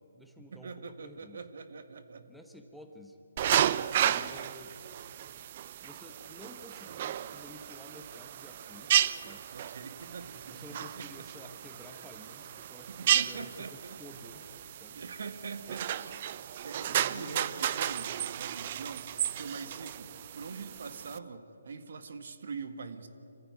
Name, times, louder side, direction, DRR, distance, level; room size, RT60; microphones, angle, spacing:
voice 1, 0.0-1.4 2.3-3.2 3.6-4.8 5.8-9.5 10.5-15.0 16.8-17.5, left 1 dB, ahead, 3 dB, 1.2 m, -52 dB
voice 2, 0.5-2.3 9.5-11.1 11.4-11.5 12.9-14.0 14.9-16.2 16.6-23.1, right 5 dB, 60° right, 9 dB, 1.7 m, -43 dB
sound 1, 3.4-21.2, right 11 dB, 40° right, 0.6 m, -33 dB
26.0 x 15.0 x 9.6 m, 2.9 s
hypercardioid pair, 150°, 0 cm